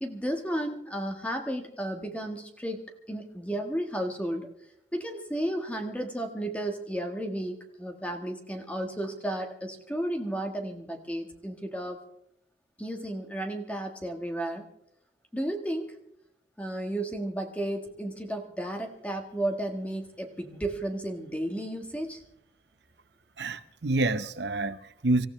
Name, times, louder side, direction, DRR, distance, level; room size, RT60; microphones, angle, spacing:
voice 1, 0.0-4.5 4.9-12.0 12.8-14.7 15.3-15.9 16.6-22.2, right 1 dB, 10° left, 1.4 m, -33 dB
voice 2, 23.4-25.3, right 2 dB, 75° right, 0.8 m, -28 dB
26.0 x 15.0 x 3.2 m
head